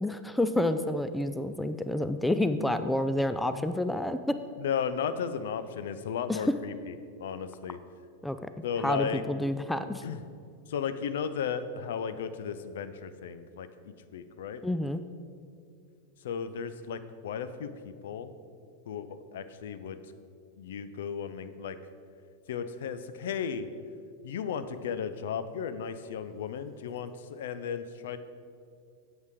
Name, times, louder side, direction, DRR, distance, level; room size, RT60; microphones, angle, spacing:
voice 1, 0.0-4.4 6.3-6.4 8.2-8.4 8.8-10.0 14.6-15.0, left 1 dB, 5° left, 10 dB, 0.4 m, -29 dB
voice 2, 4.6-6.9 7.2-7.8 8.6-9.2 10.0-10.2 10.7-14.6 16.2-18.3 18.9-20.0 20.6-21.8 22.5-23.7 24.2-28.2, left 7 dB, 60° left, 11 dB, 0.5 m, -35 dB
8.1 x 7.7 x 5.0 m, 2.3 s
figure-of-eight pair, 90°, 0 cm